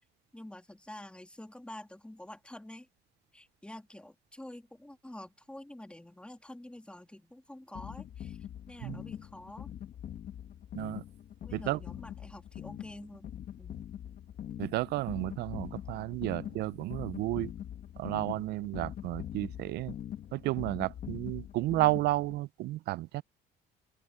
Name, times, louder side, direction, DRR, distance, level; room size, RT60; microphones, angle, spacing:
voice 1, 0.3-2.9 3.3-9.7 11.4-13.3 13.6-13.8, left 1 dB, 5° left, 2.7 m, -48 dB
sound 1, 7.7-22.4, left 10 dB, 55° left, 1.6 m, -43 dB
voice 2, 14.6-17.5 18.0-19.9 20.3-23.2, right 18 dB, 80° right, 0.5 m, -32 dB
open air
cardioid pair, 110°, 17 cm